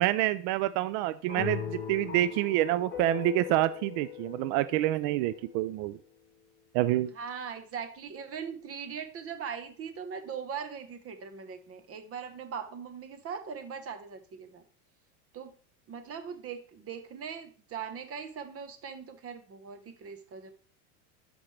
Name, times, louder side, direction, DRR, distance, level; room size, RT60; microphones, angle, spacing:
voice 1, 0.0-6.0 6.7-7.1, right 15 dB, 50° right, 14 dB, 0.4 m, -27 dB
sound 1, 1.3-5.7, left 10 dB, 20° left, 2.8 m, -43 dB
Guitar, 1.4-6.2, left 8 dB, 60° left, 1.3 m, -42 dB
voice 2, 7.1-14.6 15.3-15.5 15.9-20.5, right 7 dB, 30° right, 9 dB, 1.1 m, -40 dB
13.0 x 5.2 x 3.3 m, 0.42 s
supercardioid pair, 135°, 46 cm